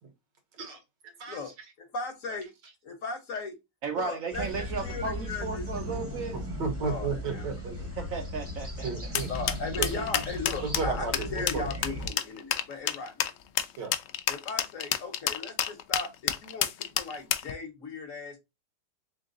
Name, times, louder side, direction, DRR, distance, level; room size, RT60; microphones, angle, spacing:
voice 1, 1.9-2.5 2.8-3.5 3.9-5.7 6.8-7.5 9.3-13.3 14.3-18.4, left 3 dB, 55° left, 1.1 m, -37 dB
voice 2, 3.8-6.4 8.0-8.9, right 5 dB, 65° right, 0.8 m, -34 dB
sound 1, 4.3-12.1, left 1 dB, 10° right, 0.7 m, -37 dB
voice 3, 6.3-7.9 8.8-9.3 9.8-10.2 10.6-11.7 13.8-13.9, right 4 dB, 80° right, 1.8 m, -33 dB
sound 2, 9.1-17.5, left 10 dB, 80° left, 0.7 m, -29 dB
3.8 x 3.7 x 2.5 m
omnidirectional pair, 1.9 m